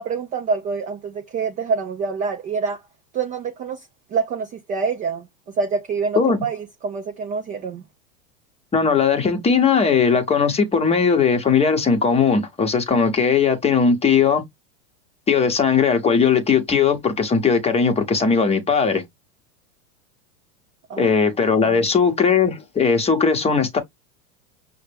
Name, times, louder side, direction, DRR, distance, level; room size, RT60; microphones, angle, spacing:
voice 1, 0.0-2.8 3.1-3.8 4.1-5.3 5.6-7.8 20.9-21.1 21.6-21.7, right 5 dB, 20° right, 0.4 m, -26 dB
voice 2, 8.7-14.4 15.3-19.0 21.0-23.8, left 5 dB, 15° left, 0.9 m, -18 dB
5.7 x 2.2 x 3.3 m
supercardioid pair, 125°, 44 cm